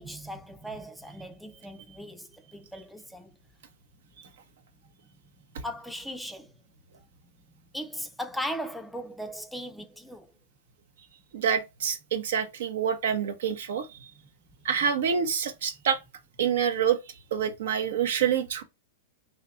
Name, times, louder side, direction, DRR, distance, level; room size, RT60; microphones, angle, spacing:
voice 1, 0.0-3.3 5.6-6.5 7.7-10.3, equal, ahead, 0.4 m, -38 dB
voice 2, 11.3-13.9 14.6-16.0 16.4-17.0 17.3-18.6, right 7 dB, 70° right, 0.6 m, -27 dB
2.7 x 2.2 x 3.6 m
hypercardioid pair, 105°, 0 cm